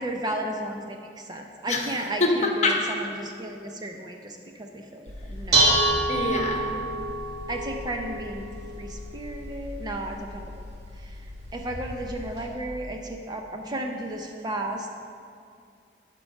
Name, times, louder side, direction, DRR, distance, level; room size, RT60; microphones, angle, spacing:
voice 1, 0.0-5.7 7.5-8.5 8.8-10.6 11.0-11.2 11.5-14.9, right 1 dB, 25° right, 3 dB, 0.6 m, -34 dB
voice 2, 2.2-2.9 6.1-6.7, left 2 dB, 40° left, 1 dB, 1.1 m, -24 dB
Dishes pots and pans, 5.1-12.5, right 2 dB, 70° right, 1.9 m, -29 dB
11.5 x 4.6 x 6.5 m, 2.4 s
head